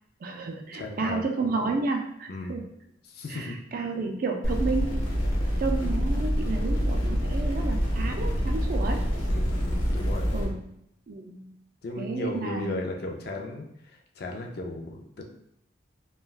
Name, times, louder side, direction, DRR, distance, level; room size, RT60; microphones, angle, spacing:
voice 1, 0.2-2.6 3.3-5.0 5.6-9.1 10.3-10.6 11.1-11.5 12.0-12.8, right 3 dB, 45° right, 4 dB, 0.3 m, -31 dB
voice 2, 0.7-1.2 2.3-2.6 3.0-3.6 5.8-6.0 9.3-10.5 11.8-15.2, left 2 dB, 50° left, 1 dB, 0.4 m, -36 dB
sound 1, 4.4-10.4, equal, 85° left, 1.0 m, -26 dB
3.2 x 2.2 x 2.3 m, 0.75 s
head